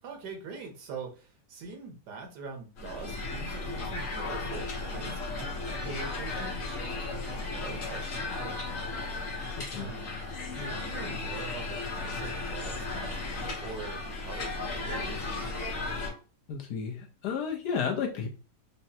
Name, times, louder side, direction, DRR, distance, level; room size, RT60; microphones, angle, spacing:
voice 1, 0.0-9.3 9.7-10.2 10.5-15.2, right 4 dB, 85° right, 3 dB, 1.6 m, -43 dB
sound 1, 2.8-16.1, left 3 dB, 55° left, 1.3 m, -35 dB
voice 2, 9.6-9.9 16.5-18.3, left 6 dB, 80° left, 1 dB, 1.5 m, -32 dB
5.1 x 2.3 x 2.8 m, 0.35 s
omnidirectional pair, 1.7 m